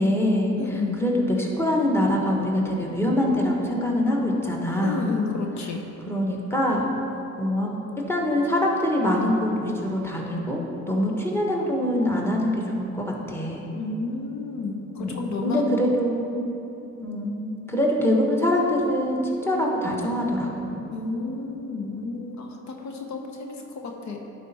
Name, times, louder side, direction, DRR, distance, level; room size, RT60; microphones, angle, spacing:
voice 1, 0.0-5.1 6.1-6.9 7.4-7.8 8.1-13.6 15.0-16.3 17.0-20.8, left 1 dB, 10° left, -1 dB, 1.2 m, -24 dB
voice 2, 0.6-1.0 4.8-5.8 13.7-15.7 20.9-24.2, left 3 dB, 70° left, 2 dB, 0.9 m, -31 dB
11.0 x 4.4 x 4.2 m, 2.9 s
cardioid pair, 90°, 30 cm